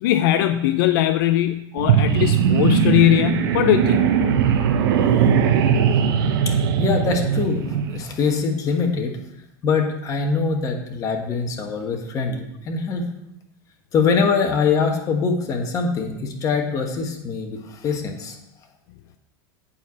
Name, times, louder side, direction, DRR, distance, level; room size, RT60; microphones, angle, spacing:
voice 1, 0.0-4.0, left 13 dB, 70° left, 10 dB, 0.5 m, -19 dB
sound 1, 1.8-8.0, right 8 dB, 80° right, 0.8 m, -19 dB
voice 2, 6.4-9.2 9.6-13.0 13.9-18.4, left 5 dB, 30° left, 3 dB, 1.4 m, -23 dB
8.8 x 4.7 x 7.2 m, 0.86 s
supercardioid pair, 140°, 12 cm